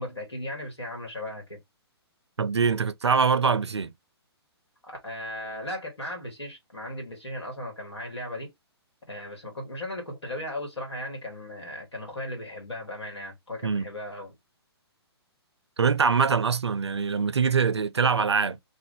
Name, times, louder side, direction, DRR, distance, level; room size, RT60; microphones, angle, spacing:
voice 1, 0.0-1.6 4.9-8.5 9.1-14.4, left 1 dB, 85° left, 1.6 m, -36 dB
voice 2, 2.4-3.9 13.6-13.9 15.8-18.6, right 5 dB, 80° right, 0.4 m, -23 dB
2.5 x 2.3 x 3.6 m
figure-of-eight pair, 125°, 14 cm